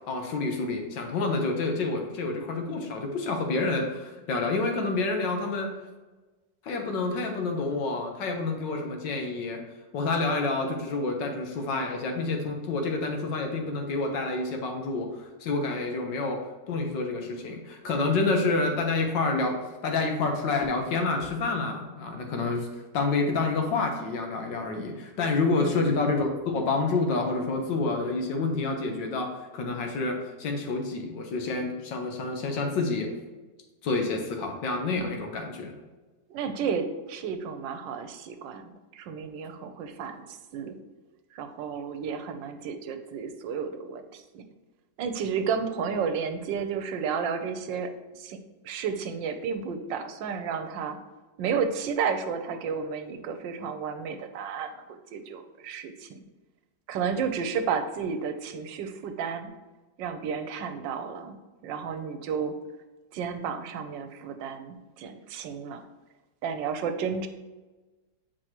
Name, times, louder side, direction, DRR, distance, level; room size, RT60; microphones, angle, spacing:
voice 1, 0.1-5.7 6.6-9.6 9.9-16.4 16.7-19.6 19.8-22.7 22.9-33.1 33.8-35.7, left 3 dB, 80° left, 3 dB, 1.7 m, -28 dB
voice 2, 25.6-25.9 36.3-40.8 41.3-44.4 45.0-51.0 51.4-56.2 56.9-59.5 60.0-62.6 63.1-65.8 66.4-67.3, right 6 dB, 85° right, 8 dB, 1.3 m, -32 dB
7.6 x 4.6 x 2.9 m, 1.2 s
omnidirectional pair, 2.0 m